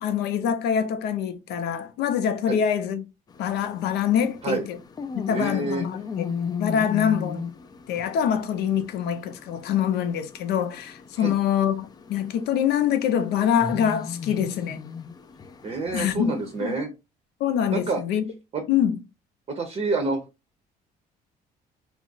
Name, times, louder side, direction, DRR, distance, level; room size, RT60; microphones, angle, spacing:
voice 1, 0.0-3.1 3.4-4.8 5.1-6.3 6.6-7.5 7.9-14.8 15.9-16.8 17.4-18.2 18.7-19.0, left 9 dB, 75° left, 0.5 m, -25 dB
sound 1, 3.3-16.8, left 6 dB, 25° left, 0.3 m, -37 dB
voice 2, 5.3-5.8 11.2-11.3 15.6-16.9 17.7-18.0 18.5-18.6 19.5-20.2, right 3 dB, 35° right, 0.6 m, -27 dB
2.4 x 2.0 x 3.8 m
cardioid pair, 110°, 17 cm